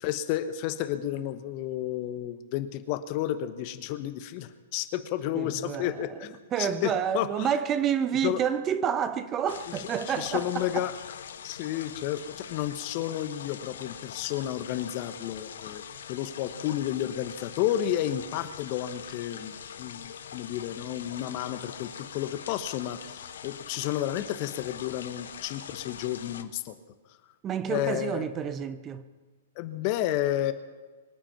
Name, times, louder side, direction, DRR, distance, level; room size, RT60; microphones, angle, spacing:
voice 1, 0.0-7.5 8.2-8.4 10.1-10.9 11.4-15.8 16.1-26.8 27.7-28.3 29.6-30.5, left 12 dB, 45° left, 1.1 m, -31 dB
voice 2, 5.3-10.9 27.4-29.0, right 8 dB, 25° right, 0.9 m, -29 dB
sound 1, 9.5-26.4, left 8 dB, 65° left, 1.0 m, -43 dB
24.0 x 8.8 x 5.9 m
figure-of-eight pair, 115°, 0 cm